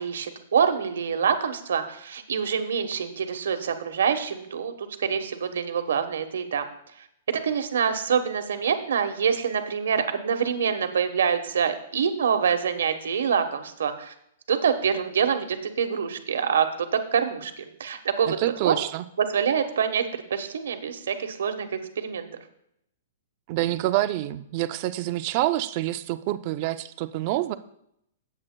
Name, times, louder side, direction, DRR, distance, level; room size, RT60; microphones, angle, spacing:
voice 1, 0.0-6.7 7.0-14.1 14.5-18.4 18.6-18.8 19.2-21.7 22.0-22.3, right 7 dB, 85° right, 8 dB, 1.1 m, -26 dB
voice 2, 18.2-19.0 23.5-27.5, right 15 dB, 30° right, 13 dB, 0.4 m, -27 dB
16.5 x 7.5 x 2.2 m, 0.75 s
hypercardioid pair, 175°, 0 cm